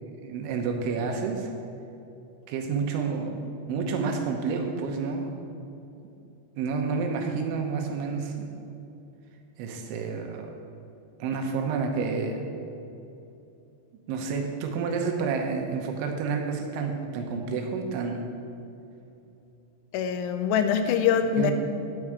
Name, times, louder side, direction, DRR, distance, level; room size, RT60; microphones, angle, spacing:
voice 1, 0.2-1.5 2.5-5.3 6.6-8.5 9.6-10.5 11.2-12.4 14.1-18.2 21.4-21.5, right 5 dB, 90° right, 3 dB, 3.4 m, -29 dB
voice 2, 19.9-21.5, left 7 dB, 90° left, 8 dB, 3.0 m, -24 dB
9.8 x 9.1 x 4.8 m, 2.8 s
omnidirectional pair, 5.3 m